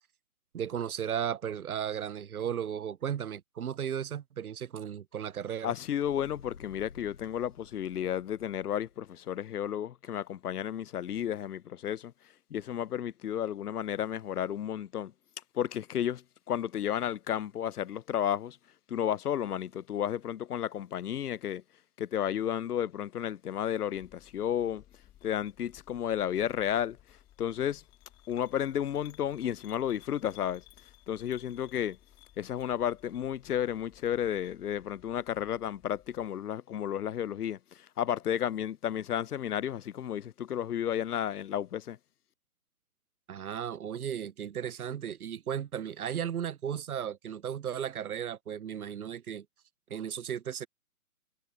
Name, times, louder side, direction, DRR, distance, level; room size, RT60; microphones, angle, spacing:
voice 1, 0.5-5.7 43.3-49.5 49.9-50.7, right 9 dB, 70° right, 0.8 m, -35 dB
voice 2, 5.6-12.1 12.5-15.1 15.5-18.6 18.9-21.6 22.0-24.8 25.2-27.0 27.4-27.8 28.3-30.6 31.1-32.0 32.4-37.6 38.0-42.0, left 10 dB, 85° left, 0.6 m, -32 dB
sound 1, 6.0-9.2, left 6 dB, 65° left, 3.7 m, -53 dB
sound 2, 23.9-36.3, left 14 dB, 10° left, 1.9 m, -59 dB
hypercardioid pair, 165°, 45 cm